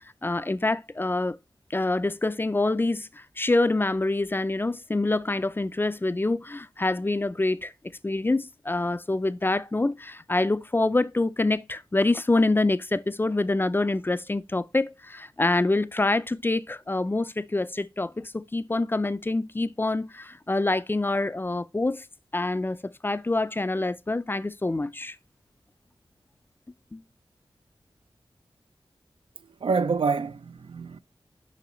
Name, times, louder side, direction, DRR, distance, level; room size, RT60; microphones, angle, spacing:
voice 1, 0.2-1.4 1.7-7.7 8.0-22.0 22.3-22.8 23.0-25.2 26.9-27.0, left 2 dB, 25° left, 0.4 m, -26 dB
voice 2, 29.4-31.0, right 4 dB, 70° right, 0.4 m, -27 dB
6.9 x 5.9 x 3.0 m
wide cardioid pair, 95°, 9 cm